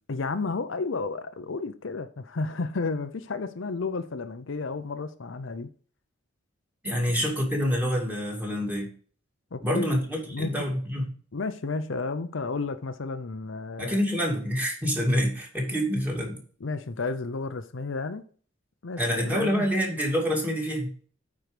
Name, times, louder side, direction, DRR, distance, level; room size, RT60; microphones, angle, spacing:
voice 1, 0.1-5.7 6.8-7.2 9.5-10.0 10.3-10.7 11.3-14.0 16.6-18.2 18.8-19.0 19.3-19.7, left 3 dB, 70° left, 0.7 m, -32 dB
voice 2, 6.8-8.9 9.6-11.1 13.8-16.4 19.0-20.9, equal, 10° right, 2.4 m, -27 dB
9.1 x 4.8 x 5.0 m
head